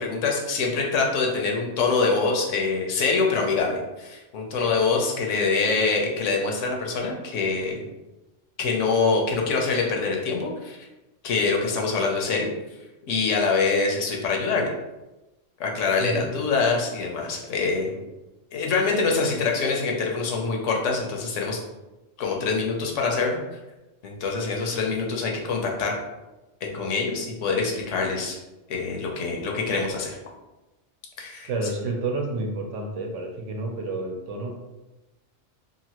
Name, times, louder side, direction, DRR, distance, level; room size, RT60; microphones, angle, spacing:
voice 1, 0.0-7.9 8.6-10.8 11.2-12.5 13.1-14.7 15.6-18.0 18.5-21.6 22.2-23.4 24.0-25.9 26.6-28.4 28.7-30.2 31.2-31.5, left 4 dB, 75° left, 0 dB, 1.0 m, -25 dB
voice 2, 16.0-16.3 17.8-17.9 31.4-34.5, right 3 dB, 75° right, 2 dB, 0.9 m, -30 dB
2.9 x 2.5 x 2.8 m, 1.0 s
omnidirectional pair, 1.3 m